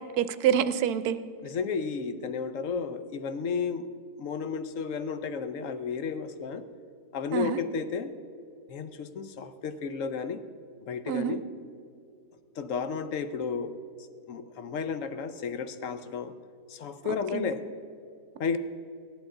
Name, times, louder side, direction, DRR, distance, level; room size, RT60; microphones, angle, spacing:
voice 1, 0.2-1.2 7.3-7.6 11.1-11.4 17.3-17.5, right 9 dB, 75° right, 13 dB, 1.1 m, -26 dB
voice 2, 1.4-3.9 4.2-6.6 7.1-8.1 8.7-10.4 10.8-11.4 12.6-13.8 14.3-16.3 16.7-17.7 18.4-18.6, left 5 dB, 65° left, 11 dB, 0.9 m, -32 dB
15.5 x 11.0 x 3.8 m, 2.4 s
omnidirectional pair, 1.7 m